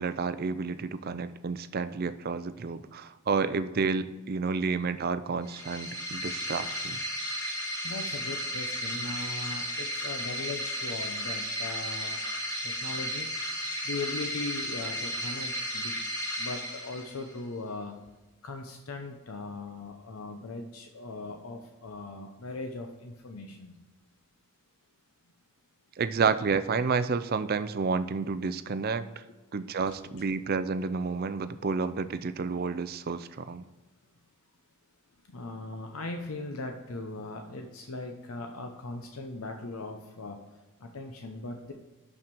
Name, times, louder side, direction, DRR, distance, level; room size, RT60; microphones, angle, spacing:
voice 1, 0.0-7.0 26.0-29.2 29.5-33.7, right 4 dB, 45° right, 12 dB, 0.4 m, -30 dB
sound 1, 5.4-17.4, equal, 15° left, 1.7 m, -34 dB
voice 2, 7.8-12.2 12.6-13.3 13.8-15.9 16.4-17.9 18.4-23.8 35.3-40.4 40.8-41.7, left 3 dB, 75° left, 4 dB, 0.7 m, -39 dB
6.4 x 6.0 x 4.5 m, 1.2 s
head